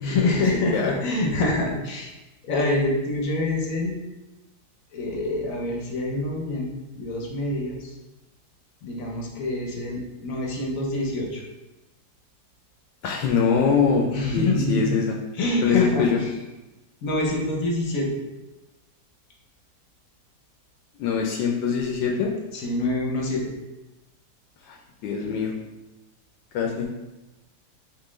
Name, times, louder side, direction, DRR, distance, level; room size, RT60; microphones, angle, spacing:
voice 1, 0.0-2.1 2.4-3.9 4.9-7.9 8.8-11.4 14.1-14.9 15.3-16.3 17.0-18.1 22.5-23.5 25.2-25.3, left 2 dB, 60° left, -1 dB, 1.0 m, -26 dB
voice 2, 13.0-14.1 14.3-15.2 15.6-16.2 21.0-22.3 24.7-24.8 25.0-25.5 26.5-26.9, left 6 dB, 80° left, 1 dB, 1.2 m, -23 dB
4.4 x 3.2 x 3.1 m, 1.0 s
omnidirectional pair, 2.0 m